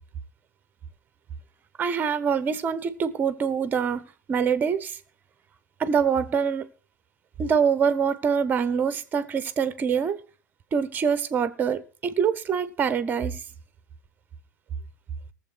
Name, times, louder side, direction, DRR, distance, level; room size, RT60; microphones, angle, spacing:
voice 1, 1.8-5.0 5.8-6.7 7.4-10.2 10.7-13.4, right 6 dB, 20° right, 0.8 m, -25 dB
19.0 x 7.3 x 4.4 m
figure-of-eight pair, 100°, 10 cm